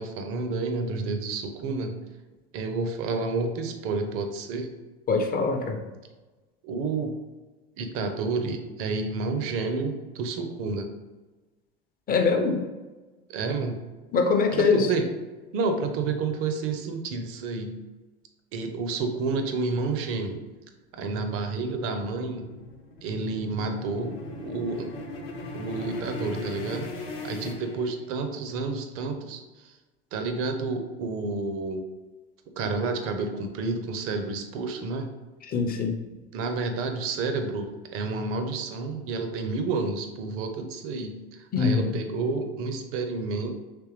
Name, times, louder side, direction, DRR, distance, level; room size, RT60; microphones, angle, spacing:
voice 1, 0.0-2.0 2.5-4.7 6.6-7.1 7.8-10.9 13.3-13.8 14.5-15.1 15.5-17.8 18.5-20.4 20.9-22.5 23.0-24.9 25.5-26.9 27.2-29.8 30.1-31.9 32.6-35.1 36.3-43.5, right 3 dB, 45° right, 6 dB, 0.6 m, -30 dB
voice 2, 5.1-5.8 12.1-12.6 14.1-14.9 35.5-36.0 41.5-42.0, left 4 dB, 30° left, 4 dB, 0.6 m, -23 dB
sound 1, 22.0-28.4, left 2 dB, 65° left, 0.9 m, -38 dB
3.4 x 3.1 x 3.1 m, 1.2 s
hypercardioid pair, 80°, 30 cm